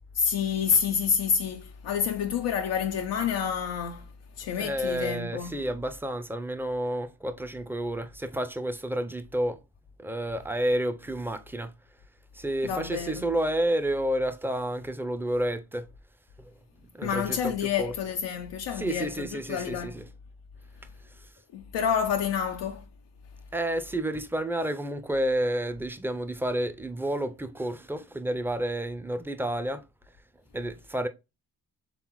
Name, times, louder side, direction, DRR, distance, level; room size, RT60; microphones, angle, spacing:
voice 1, 0.1-4.1 4.4-5.6 12.6-13.2 17.0-20.0 21.5-22.8, left 7 dB, 85° left, 0.5 m, -28 dB
voice 2, 4.6-9.6 10.0-11.7 12.3-15.9 16.4-16.5 16.9-17.5 17.8-17.9 18.8-20.0 23.5-29.8 30.5-31.1, right 1 dB, 5° right, 0.5 m, -30 dB
4.0 x 3.5 x 3.0 m
cardioid pair, 55°, 41 cm